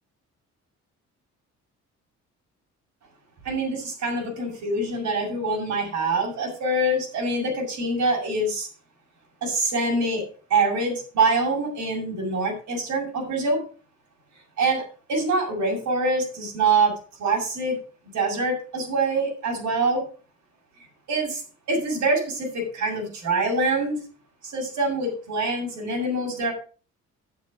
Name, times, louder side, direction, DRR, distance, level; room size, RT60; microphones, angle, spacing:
voice 1, 3.4-8.7 9.4-10.2 10.5-13.6 14.6-14.8 15.1-16.9 17.2-17.8 18.1-20.0 21.1-21.4 21.7-24.0 24.4-26.5, right 2 dB, 75° right, -2 dB, 7.0 m, -25 dB
9.5 x 7.9 x 6.4 m, 0.38 s
cardioid pair, 90°, 30 cm